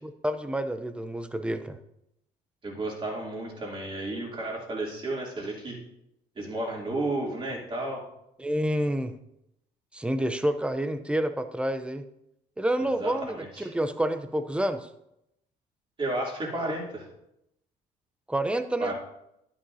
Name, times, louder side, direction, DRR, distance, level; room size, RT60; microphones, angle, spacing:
voice 1, 0.0-1.8 8.4-9.2 9.9-12.0 12.6-14.9 18.3-18.9, right 1 dB, 5° right, 10 dB, 0.6 m, -28 dB
voice 2, 2.6-5.8 6.4-8.0 12.8-13.7 16.0-17.1 18.8-18.9, right 2 dB, 30° right, -2 dB, 2.9 m, -32 dB
11.0 x 9.9 x 2.7 m, 0.83 s
cardioid pair, 110°, 17 cm